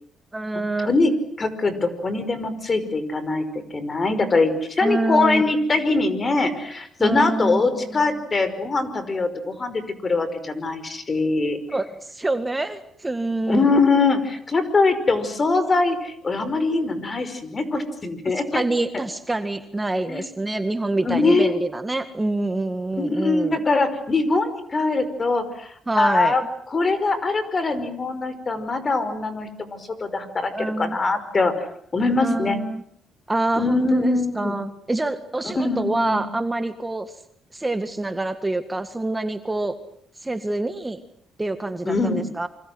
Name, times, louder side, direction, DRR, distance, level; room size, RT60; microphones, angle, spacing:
voice 1, 0.3-0.9 4.8-5.5 7.0-8.2 11.7-13.6 18.3-23.6 25.9-26.4 30.5-31.0 32.2-32.8 33.3-37.2 37.5-39.8 40.2-41.0 41.4-42.5, right 2 dB, 15° right, 9 dB, 1.9 m, -26 dB
voice 2, 0.8-11.6 13.5-18.6 20.1-20.2 21.1-21.5 23.0-26.4 26.7-32.6 33.6-34.5 35.6-36.2 41.9-42.2, left 3 dB, 35° left, 12 dB, 5.4 m, -22 dB
28.0 x 25.5 x 7.9 m, 0.64 s
cardioid pair, 90°, 0 cm